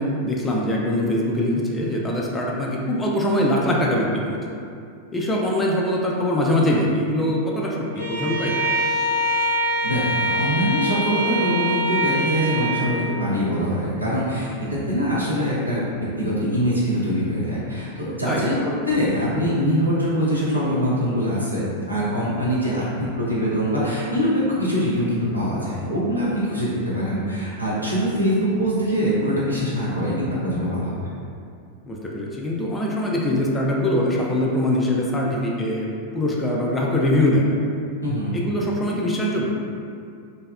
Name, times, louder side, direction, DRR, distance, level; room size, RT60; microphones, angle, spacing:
voice 1, 0.0-4.4 5.1-8.5 18.3-18.5 31.9-35.9 36.1-37.4 38.3-39.5, left 1 dB, 15° left, -3 dB, 0.3 m, -22 dB
Bowed string instrument, 8.0-12.8, equal, 75° left, 0.6 m, -24 dB
voice 2, 9.8-30.9 38.0-38.4, equal, 85° right, -8 dB, 0.6 m, -23 dB
2.6 x 2.0 x 2.3 m, 2.4 s
figure-of-eight pair, 90°, 0 cm